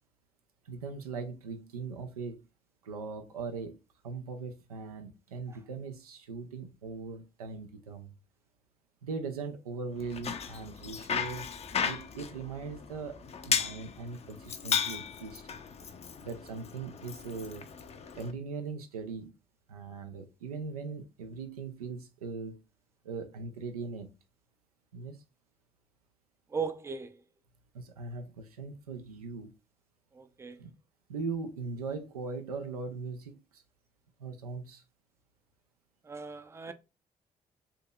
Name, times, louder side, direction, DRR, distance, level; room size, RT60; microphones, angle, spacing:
voice 1, 0.6-2.4 2.8-3.8 4.0-8.1 9.0-11.5 11.8-15.5 16.2-17.7 18.1-19.3 19.7-22.6 23.0-24.1 24.9-25.2 27.7-29.5 30.6-30.7 31.1-33.6 34.2-34.8, right 4 dB, 85° right, 0.4 m, -40 dB
Bicycle, 10.0-18.3, left 7 dB, 35° left, 0.5 m, -35 dB
voice 2, 26.5-27.1 30.2-30.6 36.1-36.7, right 5 dB, 15° right, 0.4 m, -37 dB
3.6 x 2.8 x 2.3 m
figure-of-eight pair, 40°, 18 cm